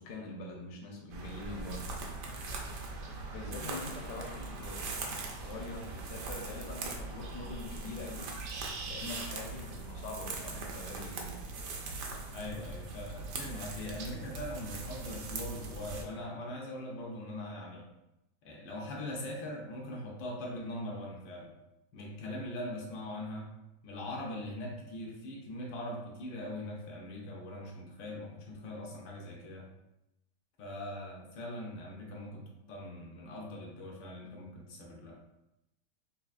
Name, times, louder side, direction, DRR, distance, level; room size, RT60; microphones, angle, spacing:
voice 1, 0.0-1.9 3.3-8.3 8.9-11.4, left 2 dB, 70° left, -1 dB, 1.2 m, -44 dB
sound 1, 1.1-16.0, right 3 dB, 75° right, 1.2 m, -41 dB
voice 2, 12.3-17.9 18.4-21.5 21.9-23.5 23.8-29.7 30.6-35.2, left 1 dB, 85° left, -2 dB, 1.5 m, -41 dB
5.6 x 2.4 x 2.4 m, 0.91 s
omnidirectional pair, 1.9 m